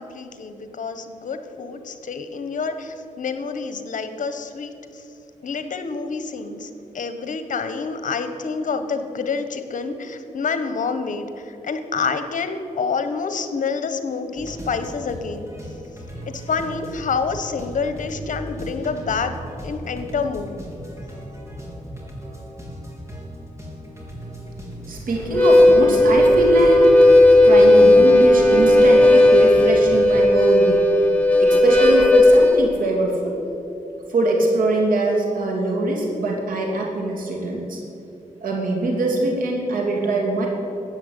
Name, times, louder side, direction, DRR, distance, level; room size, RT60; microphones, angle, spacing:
voice 1, 0.0-5.0 5.4-15.5 16.3-19.3 19.6-20.6, left 5 dB, 65° left, 9 dB, 1.3 m, -28 dB
sound 1, 14.4-30.2, equal, 20° right, 3.5 m, -37 dB
voice 2, 24.9-30.8 31.4-33.4 34.1-37.8 38.4-40.5, right 1 dB, 90° right, 0 dB, 3.0 m, -22 dB
Harmonica, 25.2-32.6, left 1 dB, 10° left, 2.5 m, -14 dB
14.0 x 8.6 x 8.4 m, 2.9 s
cardioid pair, 90°, 14 cm